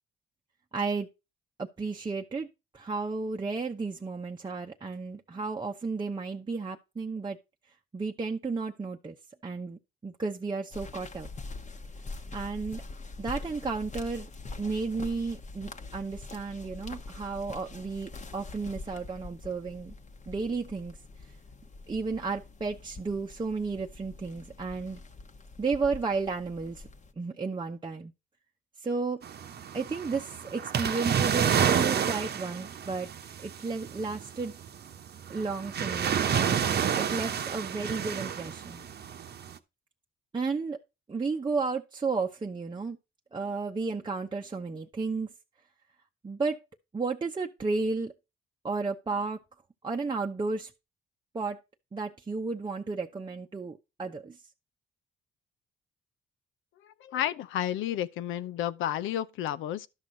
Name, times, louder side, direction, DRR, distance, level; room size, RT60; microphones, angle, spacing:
voice 1, 0.7-1.1 1.6-2.5 2.7-7.4 7.9-9.1 9.4-11.3 12.3-12.8 13.2-14.3 14.6-19.9 20.3-21.0 21.9-25.0 25.6-26.9 27.2-28.1 28.8-29.2 29.7-33.1 33.4-34.5 35.3-38.8 40.3-40.8 41.1-43.0 43.3-45.3 46.2-46.6 46.9-48.1 48.6-49.4 49.8-50.7 51.3-51.6 51.9-54.4, right 4 dB, 25° right, 0.8 m, -33 dB
sound 1, 10.7-27.1, left 3 dB, 35° left, 1.1 m, -44 dB
sound 2, 29.2-39.6, right 8 dB, 55° right, 0.9 m, -30 dB
voice 2, 57.0-59.9, left 11 dB, 85° left, 0.6 m, -31 dB
11.5 x 6.2 x 3.9 m
cardioid pair, 90°, 20 cm